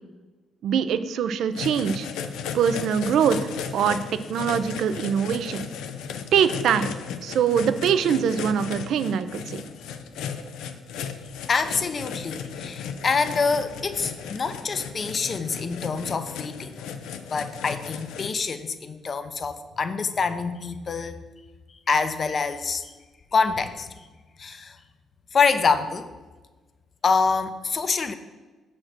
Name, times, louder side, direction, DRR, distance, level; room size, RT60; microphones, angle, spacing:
voice 1, 0.6-2.1 2.5-4.0 4.3-5.7 6.3-6.9 7.2-9.6, right 8 dB, 75° right, 12 dB, 0.4 m, -23 dB
sound 1, 1.5-18.3, left 7 dB, 90° left, 0.5 m, -35 dB
voice 2, 11.5-16.8 17.3-21.2 21.9-22.9 23.3-24.1 24.4-24.8 25.3-26.1 27.0-28.1, left 5 dB, 45° left, 10 dB, 0.6 m, -26 dB
6.5 x 4.3 x 6.1 m, 1.3 s
cardioid pair, 90°, 0 cm